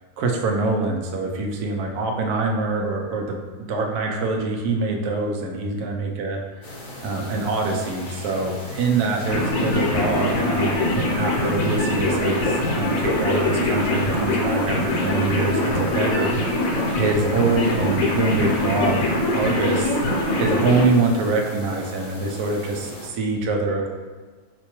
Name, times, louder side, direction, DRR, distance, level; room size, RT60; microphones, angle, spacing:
voice 1, 0.2-3.4 3.7-6.4 7.0-16.3 16.9-20.0 20.4-23.9, right 3 dB, 80° right, 1 dB, 1.1 m, -24 dB
Ambiente interior Galpón vacío día, 6.6-23.1, left 1 dB, 50° left, 0.6 m, -38 dB
sound 1, 9.3-20.8, left 1 dB, 70° left, 1.0 m, -23 dB
4.8 x 2.2 x 2.9 m, 1.4 s
omnidirectional pair, 1.6 m